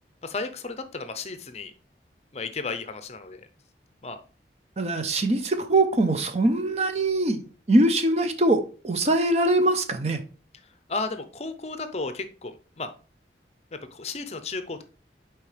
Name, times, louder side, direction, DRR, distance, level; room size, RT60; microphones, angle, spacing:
voice 1, 0.2-1.7 2.3-3.4 4.0-4.2 10.9-12.9 13.7-14.8, left 3 dB, 35° left, 0.6 m, -33 dB
voice 2, 4.8-10.2, right 2 dB, 35° right, 0.7 m, -22 dB
6.8 x 4.6 x 3.3 m
head